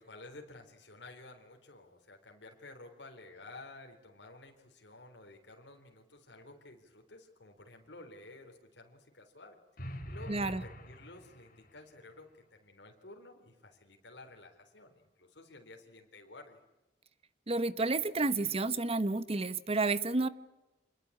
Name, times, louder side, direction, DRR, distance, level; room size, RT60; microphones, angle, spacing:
voice 1, 0.0-16.6, left 2 dB, 80° left, 3 dB, 3.8 m, -53 dB
sound 1, 9.8-11.8, equal, 55° left, 3.5 m, -45 dB
voice 2, 10.3-10.6 17.5-20.3, right 3 dB, 35° right, 15 dB, 1.0 m, -30 dB
27.5 x 21.0 x 8.5 m, 1.0 s
head